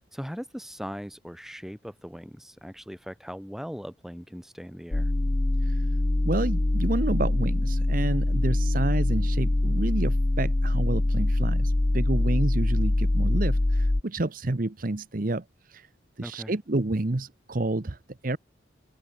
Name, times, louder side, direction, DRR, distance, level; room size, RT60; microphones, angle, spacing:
voice 1, 0.1-5.1 16.2-16.5, equal, ahead, 3.0 m, -39 dB
sound 1, 4.9-14.0, left 1 dB, 20° left, 0.4 m, -24 dB
voice 2, 6.2-15.9 16.2-18.4, right 2 dB, 45° right, 0.9 m, -29 dB
open air
head